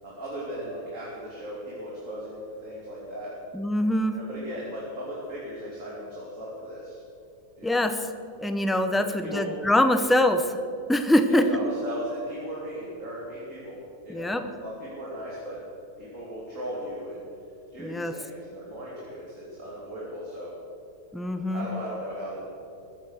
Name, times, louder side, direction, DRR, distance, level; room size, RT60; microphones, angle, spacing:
voice 1, 0.0-3.3 4.1-7.0 7.6-7.8 9.0-9.4 11.3-13.8 14.0-14.3 14.6-15.6 16.0-17.2 17.7-20.5 21.5-22.4, equal, 50° right, -6 dB, 3.3 m, -37 dB
voice 2, 3.5-4.2 7.6-8.1 8.4-10.6 10.9-11.5 14.1-14.4 17.8-18.1 21.1-21.7, left 1 dB, ahead, 7 dB, 0.5 m, -23 dB
21.5 x 10.5 x 6.5 m, 2.7 s
omnidirectional pair, 1.7 m